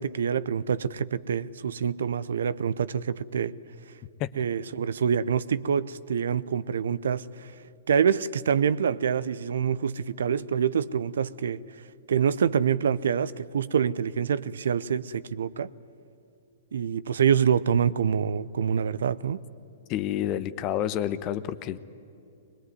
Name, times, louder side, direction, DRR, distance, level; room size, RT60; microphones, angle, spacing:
voice 1, 0.0-3.5 4.4-7.5 7.9-11.6 12.1-15.7 16.7-19.4, right 7 dB, 70° right, 18 dB, 0.6 m, -26 dB
voice 2, 19.9-21.8, left 11 dB, 35° left, 14 dB, 1.0 m, -29 dB
21.5 x 21.5 x 9.6 m, 2.6 s
figure-of-eight pair, 115°, 0 cm